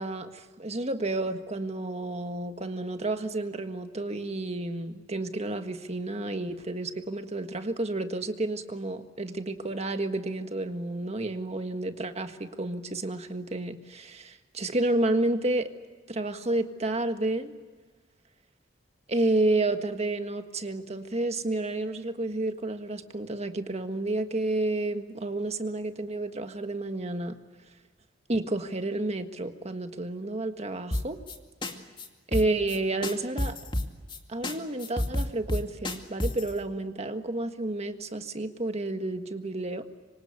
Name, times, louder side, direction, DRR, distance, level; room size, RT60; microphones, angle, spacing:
voice 1, 0.0-15.7 16.1-17.6 19.1-27.3 28.3-31.2 32.3-33.6 34.3-39.8, right 2 dB, 35° right, 7 dB, 1.6 m, -30 dB
sound 1, 30.9-31.4 31.6-31.7 32.0-32.1 32.3-32.8 33.0-34.2 34.4-34.5 34.8-36.5, left 1 dB, 25° left, 2.2 m, -29 dB
26.0 x 24.5 x 8.3 m, 1.4 s
head